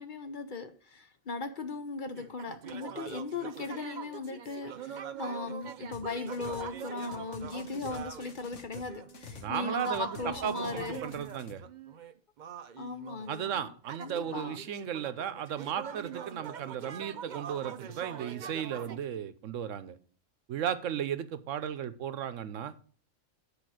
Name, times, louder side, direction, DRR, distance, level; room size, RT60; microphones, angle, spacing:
voice 1, 0.0-11.1 12.8-13.7 14.0-14.6, left 3 dB, 50° left, 0.8 m, -38 dB
sound 1, 2.1-8.4 8.7-19.0, right 8 dB, 50° right, 0.6 m, -43 dB
sound 2, 5.9-6.7 7.0-9.5 9.8-11.5, left 5 dB, 70° left, 1.4 m, -48 dB
voice 2, 9.4-11.6 13.3-20.0 20.5-22.7, right 9 dB, 80° right, 1.1 m, -35 dB
8.9 x 4.9 x 6.2 m
omnidirectional pair, 1.3 m